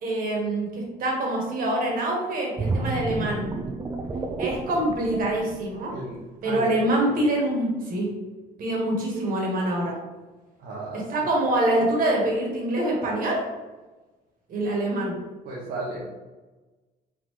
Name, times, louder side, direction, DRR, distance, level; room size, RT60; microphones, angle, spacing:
voice 1, 0.0-3.5 4.4-5.9 6.4-8.1 8.6-9.9 11.1-13.4 14.5-15.1, right 1 dB, 55° right, -1 dB, 1.4 m, -25 dB
sound 1, 2.6-6.2 6.6-6.8, right 3 dB, 25° right, 0.4 m, -31 dB
voice 2, 5.9-6.7 10.6-11.3 15.4-16.1, right 2 dB, 80° right, -5 dB, 1.0 m, -35 dB
3.8 x 3.6 x 3.0 m, 1.2 s
cardioid pair, 110°, 17 cm